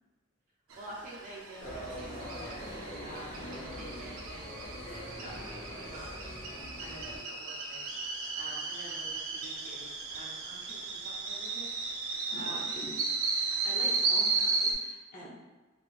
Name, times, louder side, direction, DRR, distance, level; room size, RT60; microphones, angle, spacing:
voice 1, 0.7-2.7 3.0-4.5 4.9-7.9 8.4-11.7 12.3-12.7, right 1 dB, 40° right, -5 dB, 0.5 m, -48 dB
sound 1, 0.7-14.7, right 4 dB, 85° right, 0.5 m, -34 dB
sound 2, 1.6-7.2, equal, 85° left, 1.0 m, -43 dB
voice 2, 3.3-3.9 12.3-15.3, equal, 40° left, -5 dB, 0.6 m, -46 dB
2.7 x 2.3 x 2.3 m, 1.2 s
head